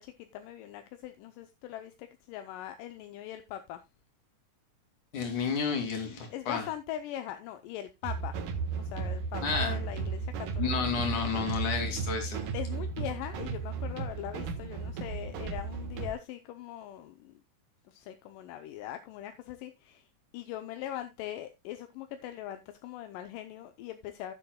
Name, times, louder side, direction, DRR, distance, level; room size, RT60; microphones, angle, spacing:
voice 1, 0.0-3.8 6.3-8.4 8.8-10.7 12.5-17.3 17.9-20.0 20.3-24.3, left 12 dB, 85° left, 2.4 m, -41 dB
voice 2, 5.1-6.7 9.4-9.8 10.6-12.4, left 5 dB, 65° left, 4.0 m, -31 dB
sound 1, 8.0-16.1, right 5 dB, 85° right, 3.0 m, -35 dB
16.0 x 7.6 x 2.2 m
omnidirectional pair, 3.7 m